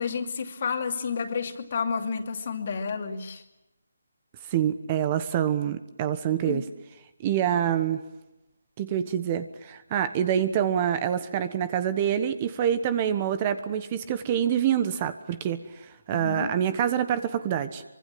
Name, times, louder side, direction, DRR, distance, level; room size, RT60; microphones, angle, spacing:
voice 1, 0.0-3.4 6.5-6.6 16.1-16.5, left 5 dB, 45° left, 5 dB, 2.7 m, -30 dB
voice 2, 4.5-6.6 7.2-8.0 8.8-17.8, right 9 dB, 25° right, 12 dB, 1.2 m, -26 dB
24.5 x 24.5 x 7.7 m, 0.93 s
figure-of-eight pair, 160°, 0 cm